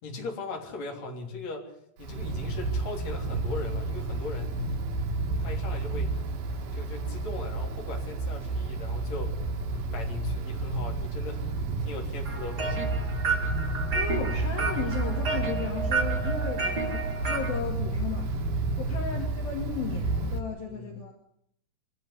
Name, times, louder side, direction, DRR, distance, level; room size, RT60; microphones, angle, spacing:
voice 1, 0.0-4.5 5.4-6.1 6.7-9.3 9.9-11.4 11.8-12.8 18.9-19.1 20.6-20.9, left 3 dB, 40° left, 1 dB, 4.3 m, -38 dB
Wind, 2.0-20.4, right 3 dB, 60° right, 3.3 m, -31 dB
sound 1, 12.2-17.6, right 4 dB, 30° right, 2.2 m, -31 dB
voice 2, 13.9-21.1, left 6 dB, 60° left, 2 dB, 3.8 m, -35 dB
24.0 x 12.0 x 9.8 m, 0.72 s
omnidirectional pair, 5.2 m